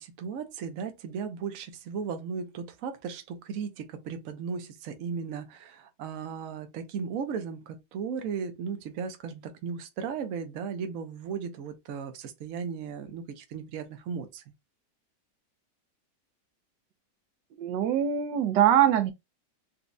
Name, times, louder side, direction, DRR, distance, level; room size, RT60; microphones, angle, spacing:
voice 1, 0.0-14.4, right 6 dB, 60° right, 1.0 m, -36 dB
voice 2, 17.6-19.1, right 10 dB, 85° right, 1.3 m, -23 dB
4.0 x 2.3 x 2.5 m
omnidirectional pair, 1.9 m